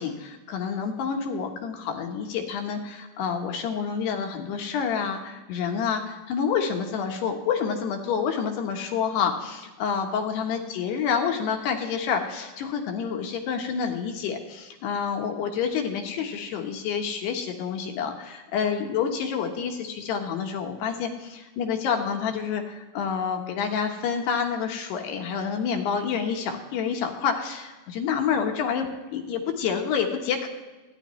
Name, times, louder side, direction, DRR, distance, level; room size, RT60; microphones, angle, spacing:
voice 1, 0.0-28.9 29.1-30.5, left 6 dB, 70° left, 4 dB, 2.9 m, -28 dB
27.5 x 10.5 x 3.1 m, 1.2 s
omnidirectional pair, 5.7 m